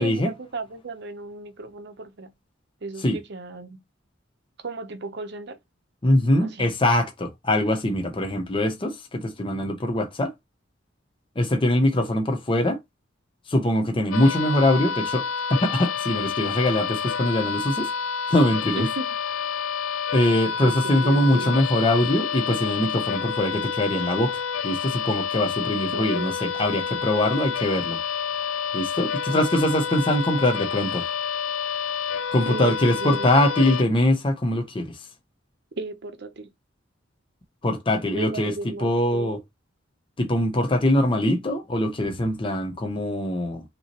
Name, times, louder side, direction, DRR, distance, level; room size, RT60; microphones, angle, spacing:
voice 1, 0.0-2.3 2.8-3.8 4.6-5.6 6.4-6.7 18.8-19.1 20.6-21.5 25.9-26.4 32.4-33.3 35.8-36.5 38.1-39.4, right 3 dB, 60° right, 0.8 m, -35 dB
voice 2, 6.0-10.3 11.4-12.8 13.5-15.3 15.6-17.9 18.3-18.9 20.1-28.0 28.7-31.1 32.3-35.0 37.6-38.5 38.8-39.4 40.2-43.6, left 1 dB, 25° left, 0.7 m, -22 dB
sound 1, 14.1-33.8, left 6 dB, 90° left, 0.5 m, -29 dB
5.5 x 2.9 x 2.9 m
head